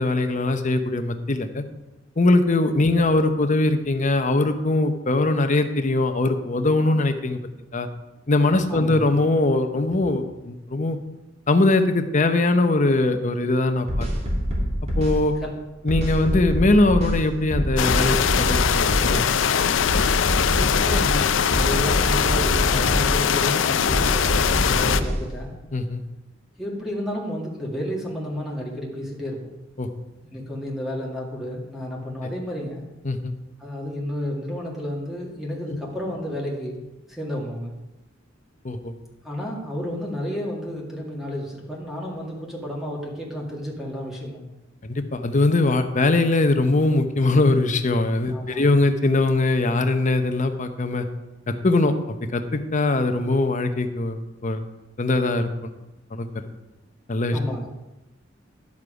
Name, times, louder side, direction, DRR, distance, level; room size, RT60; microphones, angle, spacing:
voice 1, 0.0-1.6 2.2-7.4 7.7-7.9 8.3-11.0 11.5-14.1 15.0-15.3 15.8-19.2 24.7-24.8 25.7-26.0 29.8-29.9 33.0-33.3 35.7-35.8 38.6-38.9 44.8-51.1 51.5-54.6 55.0-55.7 56.1-56.3 57.1-57.4, left 2 dB, 40° left, 7 dB, 0.8 m, -21 dB
voice 2, 8.7-9.1 15.4-15.5 20.5-25.5 26.6-29.5 30.3-32.9 33.6-37.7 39.2-44.4 48.3-48.7 57.3-57.7, equal, ahead, -3 dB, 1.9 m, -31 dB
sound 1, 13.9-15.2 15.9-17.2 17.5-19.2 19.9-21.2 21.5-23.2 23.9-25.2, equal, 35° right, 2.5 m, -25 dB
sound 2, 17.8-25.0, left 7 dB, 75° left, 0.5 m, -21 dB
11.0 x 7.4 x 4.9 m, 1.0 s
head